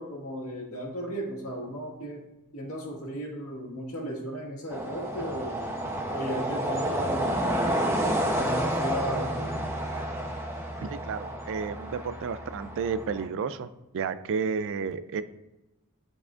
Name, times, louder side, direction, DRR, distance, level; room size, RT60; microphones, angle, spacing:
voice 1, 0.0-2.2 2.5-5.7 6.1-7.8 8.4-9.7, equal, 70° left, -2 dB, 1.9 m, -35 dB
sound 1, 4.7-13.2, right 1 dB, 10° right, 0.8 m, -30 dB
voice 2, 10.8-15.2, right 5 dB, 60° right, 13 dB, 0.4 m, -32 dB
10.5 x 4.8 x 2.5 m, 1.0 s
head